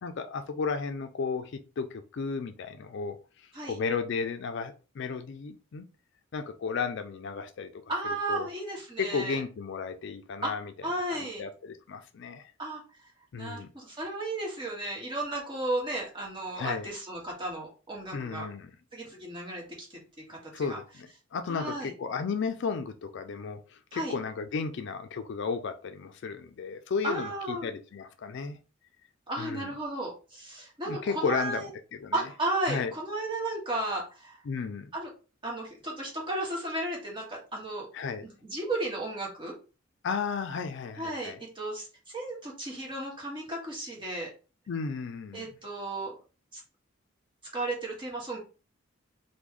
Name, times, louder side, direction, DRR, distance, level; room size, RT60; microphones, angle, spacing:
voice 1, 0.0-3.2 3.6-5.9 6.3-7.8 8.3-8.5 9.0-10.7 11.1-12.5 13.3-13.7 16.6-16.9 18.1-18.7 20.5-28.6 29.4-29.7 30.9-31.6 31.9-32.2 32.7-32.9 34.5-34.9 37.9-38.3 40.0-41.4 44.7-45.5, left 5 dB, 60° left, 8 dB, 0.4 m, -34 dB
voice 2, 7.9-9.4 10.4-10.5 10.8-11.4 12.6-12.8 13.3-18.5 18.9-19.6 19.9-20.0 20.3-20.8 21.5-21.9 23.9-24.2 27.0-27.7 29.3-31.7 32.1-34.4 34.9-35.1 35.4-37.9 38.2-39.5 41.0-44.3 45.3-46.1 46.5-46.6 47.5-48.4, right 2 dB, 25° right, -2 dB, 1.2 m, -34 dB
3.1 x 2.2 x 3.6 m, 0.33 s
head